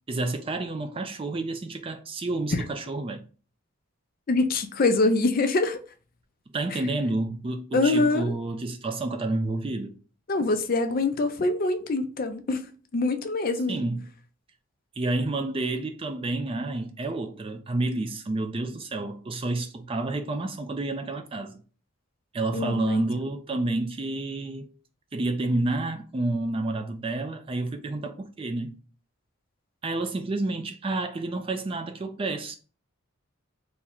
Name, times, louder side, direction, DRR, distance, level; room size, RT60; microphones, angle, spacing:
voice 1, 0.1-3.3 6.5-10.0 13.7-14.0 15.0-21.6 22.3-24.7 25.1-28.8 29.8-32.6, right 2 dB, 25° right, 0.3 m, -29 dB
voice 2, 4.3-5.8 7.7-8.3 10.3-12.7 12.9-13.8 22.5-23.0, left 3 dB, 40° left, 0.4 m, -24 dB
3.6 x 2.1 x 4.3 m
head